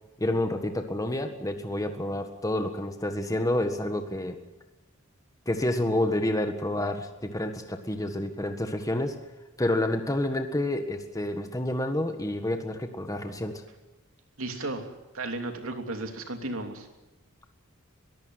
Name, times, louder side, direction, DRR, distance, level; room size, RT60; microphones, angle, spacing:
voice 1, 0.2-4.4 5.5-9.2 9.6-13.6, left 1 dB, 15° left, 6 dB, 1.6 m, -29 dB
voice 2, 14.4-16.9, right 2 dB, 75° right, 5 dB, 3.0 m, -34 dB
22.0 x 15.5 x 9.6 m, 1.1 s
head